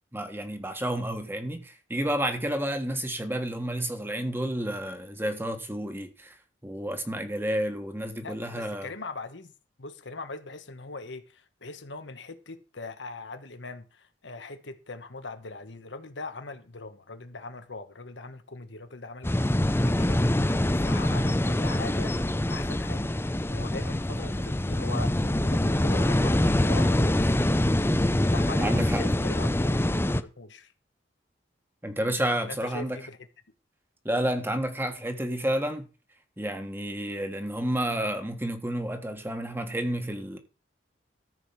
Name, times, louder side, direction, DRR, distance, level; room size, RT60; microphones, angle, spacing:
voice 1, 0.1-6.3 6.6-8.9 28.6-29.0 31.8-33.0 34.0-35.9 36.4-40.4, right 1 dB, 10° right, 1.6 m, -30 dB
voice 2, 8.2-9.5 9.8-19.3 19.8-22.2 22.5-27.2 28.3-30.7 32.4-33.2, left 3 dB, 70° left, 1.3 m, -41 dB
sound 1, 19.2-30.2, left 1 dB, 15° left, 0.6 m, -25 dB
14.0 x 5.1 x 7.2 m
head